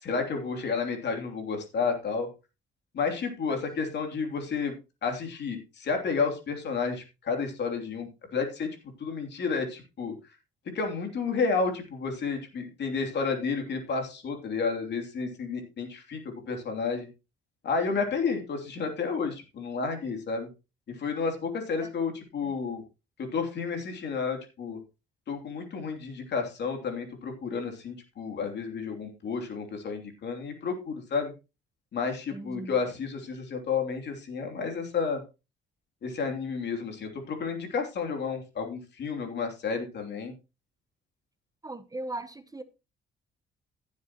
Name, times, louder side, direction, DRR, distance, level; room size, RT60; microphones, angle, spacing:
voice 1, 0.0-2.3 2.9-4.7 5.0-8.7 9.0-10.1 10.7-16.2 16.5-17.1 17.6-20.5 20.9-22.8 23.2-24.8 25.3-31.3 31.9-35.2 36.0-40.3, left 5 dB, 60° left, 3.0 m, -31 dB
voice 2, 32.3-32.7 41.6-42.6, right 2 dB, 20° right, 0.9 m, -38 dB
15.0 x 7.4 x 3.0 m
cardioid pair, 90°, 20 cm